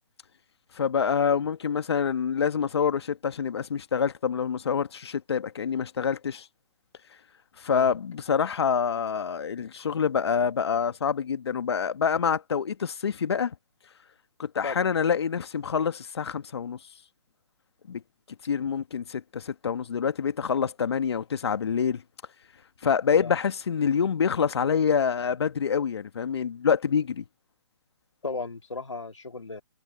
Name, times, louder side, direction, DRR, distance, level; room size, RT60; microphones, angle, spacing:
voice 1, 0.8-6.4 7.6-13.5 14.4-16.8 17.9-18.0 18.4-22.0 22.8-27.2, left 7 dB, 65° left, 1.7 m, -26 dB
voice 2, 28.2-29.6, left 3 dB, 85° left, 2.1 m, -35 dB
figure-of-eight pair, 135°, 15 cm